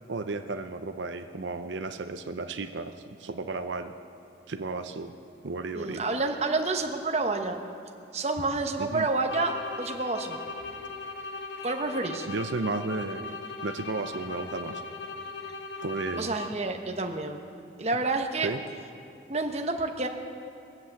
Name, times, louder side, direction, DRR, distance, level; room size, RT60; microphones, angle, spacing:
voice 1, 0.1-2.9 3.2-3.9 4.5-5.1 5.4-6.0 8.8-9.1 12.3-14.8 15.8-16.4 18.4-18.6, right 3 dB, 90° right, 8 dB, 0.7 m, -33 dB
voice 2, 5.7-7.6 8.1-10.4 11.6-12.3 16.2-17.4 17.8-18.5 19.3-20.1, right 3 dB, 35° right, 4 dB, 1.0 m, -29 dB
sound 1, 9.2-16.8, left 3 dB, 85° left, 1.2 m, -39 dB
22.0 x 7.8 x 7.1 m, 2.6 s
head